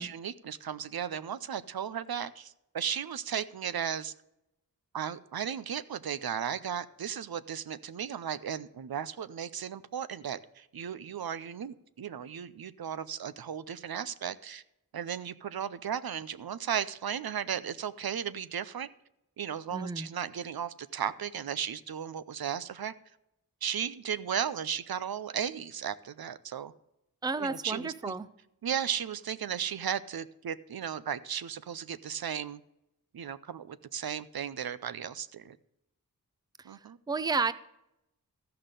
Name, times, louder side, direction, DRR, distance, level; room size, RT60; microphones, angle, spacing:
voice 1, 0.0-4.1 4.9-14.6 14.9-18.9 19.4-22.9 23.6-26.7 27.4-28.1 28.6-32.6 33.1-35.6 36.6-37.0, right 8 dB, 80° right, 15 dB, 0.5 m, -35 dB
voice 2, 19.7-20.1 27.2-28.3 36.6-37.5, right 4 dB, 10° right, 15 dB, 0.4 m, -32 dB
13.5 x 5.8 x 6.6 m, 0.86 s
wide cardioid pair, 65°, 36 cm